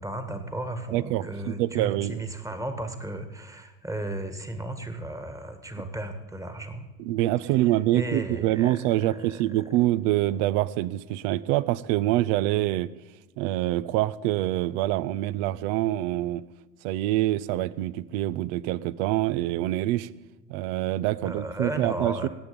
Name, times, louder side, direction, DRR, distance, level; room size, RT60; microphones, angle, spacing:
voice 1, 0.0-6.9 7.9-9.4 21.2-22.3, right 1 dB, 5° right, 8 dB, 1.7 m, -34 dB
voice 2, 0.9-2.2 7.0-12.9 13.4-16.4 16.8-20.1 20.5-22.3, right 15 dB, 55° right, 19 dB, 0.7 m, -25 dB
18.0 x 8.1 x 5.2 m, 1.2 s
hypercardioid pair, 80°, 43 cm